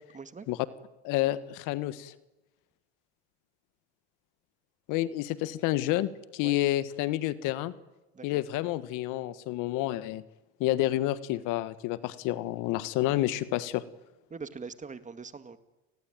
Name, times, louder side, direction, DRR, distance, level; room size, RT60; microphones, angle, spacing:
voice 1, 0.1-0.5 6.4-6.6 8.1-8.4 14.3-15.6, right 5 dB, 20° right, 12 dB, 1.9 m, -42 dB
voice 2, 1.0-2.1 4.9-7.7 8.2-10.2 10.6-13.8, left 15 dB, 60° left, 15 dB, 1.5 m, -29 dB
30.0 x 20.0 x 9.1 m, 1.0 s
supercardioid pair, 95°, 34 cm